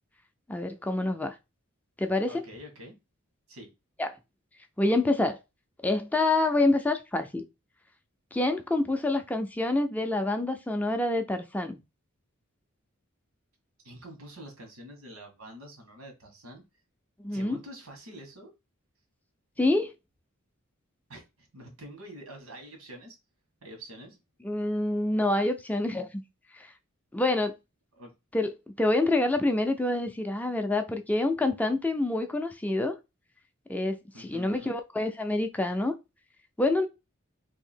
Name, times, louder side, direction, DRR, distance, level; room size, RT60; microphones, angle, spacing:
voice 1, 0.5-1.4 2.0-2.4 4.0-4.2 4.8-5.4 5.8-7.4 8.3-11.8 17.2-17.6 19.6-19.9 24.4-26.2 26.5-26.7 27.1-27.5 28.3-32.9 33.7-35.9 36.6-36.9, left 2 dB, 5° left, 0.3 m, -27 dB
voice 2, 2.3-2.9 3.5-3.7 13.8-16.6 17.3-18.5 21.1-23.2 23.6-24.2 28.0-28.1 34.1-34.8, equal, 90° right, 1.4 m, -46 dB
2.8 x 2.7 x 4.2 m
head